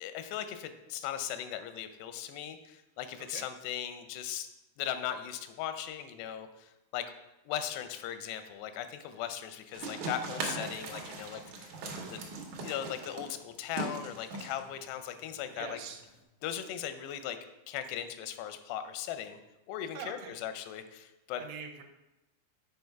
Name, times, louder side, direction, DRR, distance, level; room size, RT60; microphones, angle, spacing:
voice 1, 0.0-4.5 4.8-7.1 7.5-11.7 12.1-12.2 12.6-15.8 16.4-17.4 17.7-19.4 19.7-21.4, left 10 dB, 90° left, 9 dB, 2.7 m, -38 dB
sound 1, 9.7-16.2, right 3 dB, 65° right, 1.9 m, -40 dB
voice 2, 15.5-16.0 19.9-20.3 21.3-21.8, right 7 dB, 80° right, 5 dB, 2.7 m, -43 dB
7.8 x 4.9 x 4.6 m, 0.95 s
omnidirectional pair, 4.7 m